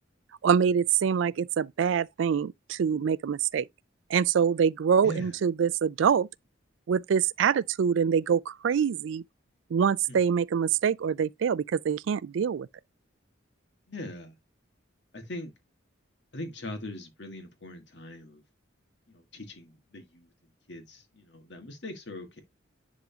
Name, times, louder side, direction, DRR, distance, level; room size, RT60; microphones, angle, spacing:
voice 1, 0.4-3.7 4.1-6.3 6.9-9.2 9.7-12.7, right 7 dB, 75° right, 0.3 m, -25 dB
voice 2, 5.0-5.4 10.1-10.2 13.9-14.3 15.1-15.5 16.3-18.4 19.1-20.3 20.7-22.4, left 1 dB, 60° left, 1.6 m, -41 dB
10.5 x 3.7 x 2.8 m
head